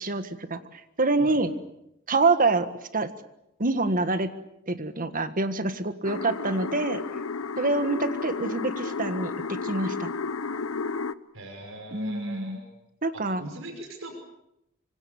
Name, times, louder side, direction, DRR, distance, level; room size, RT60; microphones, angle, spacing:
voice 1, 0.0-1.5 2.1-2.7 2.9-3.1 3.6-4.3 4.7-7.0 7.6-10.1 11.9-12.6 13.0-13.4, right 3 dB, 40° right, 10 dB, 1.6 m, -26 dB
voice 2, 1.2-1.5 11.3-12.7 13.1-14.1, right 1 dB, 65° right, 4 dB, 5.8 m, -41 dB
sound 1, 6.0-11.1, left 4 dB, 85° left, 0.9 m, -32 dB
26.0 x 25.0 x 7.2 m, 0.82 s
head